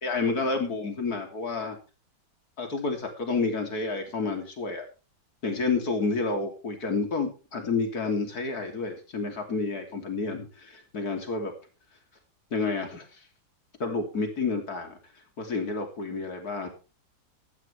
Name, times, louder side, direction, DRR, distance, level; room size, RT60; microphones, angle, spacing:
voice 1, 0.0-1.8 2.6-4.9 5.4-11.5 12.5-13.2 13.8-15.0 15.4-16.7, left 3 dB, 55° left, 4 dB, 3.5 m, -30 dB
15.0 x 14.0 x 3.4 m, 0.33 s
omnidirectional pair, 2.0 m